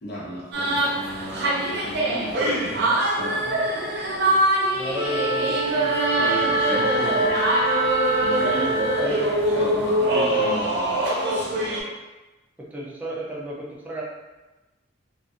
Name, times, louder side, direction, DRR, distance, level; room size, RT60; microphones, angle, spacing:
voice 1, 0.0-3.5 4.3-4.4 6.1-7.8 8.2-9.2 9.5-11.0, equal, 55° left, -6 dB, 0.8 m, -34 dB
sound 1, 0.5-11.8, right 1 dB, 60° right, 0.5 m, -24 dB
voice 2, 3.4-4.1 4.7-5.9 9.0-9.3 12.6-14.0, equal, 10° right, -5 dB, 0.4 m, -34 dB
Wind instrument woodwind instrument, 4.9-9.3, right 2 dB, 25° right, 0.9 m, -25 dB
2.5 x 2.4 x 2.5 m, 1.1 s
head